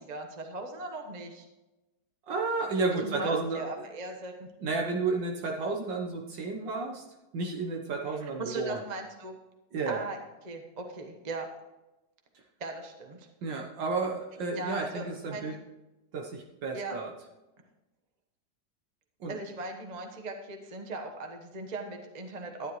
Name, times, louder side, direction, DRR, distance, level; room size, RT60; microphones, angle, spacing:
voice 1, 0.0-1.5 2.9-4.5 8.2-9.4 9.9-10.2 10.4-11.5 12.6-13.3 14.5-15.0 15.3-15.5 16.7-17.0 19.3-22.7, right 3 dB, 25° right, 3 dB, 1.1 m, -38 dB
voice 2, 2.3-3.8 4.6-7.0 7.3-8.8 9.7-10.0 13.4-15.6 16.1-17.1 19.2-19.4, right 3 dB, 75° right, 1 dB, 1.8 m, -32 dB
12.0 x 10.5 x 3.2 m, 1.0 s
omnidirectional pair, 2.0 m